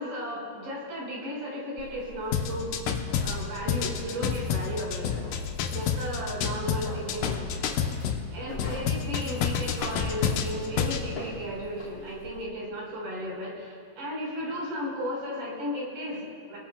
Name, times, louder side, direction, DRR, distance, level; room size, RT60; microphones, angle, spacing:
voice 1, 0.0-2.8 3.2-5.2 5.7-7.8 8.3-16.6, equal, 65° right, -4 dB, 6.3 m, -35 dB
sound 1, 1.8-12.4, left 2 dB, 55° left, 1.9 m, -44 dB
sound 2, 2.3-8.2 8.6-11.0, left 7 dB, 85° left, 1.9 m, -29 dB
28.5 x 19.0 x 2.3 m, 2.3 s
omnidirectional pair, 5.0 m